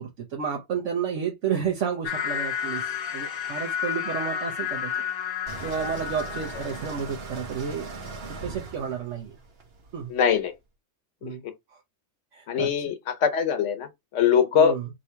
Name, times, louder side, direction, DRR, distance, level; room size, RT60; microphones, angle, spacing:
voice 1, 0.0-4.9 5.6-7.9 8.4-9.4 9.9-10.1 11.2-11.4 11.7-11.8 12.3-12.7 14.5-14.9, right 7 dB, 80° right, 1.2 m, -31 dB
sound 1, 2.0-7.1, left 8 dB, 60° left, 0.9 m, -31 dB
sound 2, 5.5-10.4, right 3 dB, 60° right, 1.2 m, -39 dB
voice 2, 10.1-10.5 11.2-11.5 12.5-13.0 13.2-14.7, left 7 dB, 80° left, 1.2 m, -22 dB
3.8 x 2.8 x 4.4 m
omnidirectional pair, 1.2 m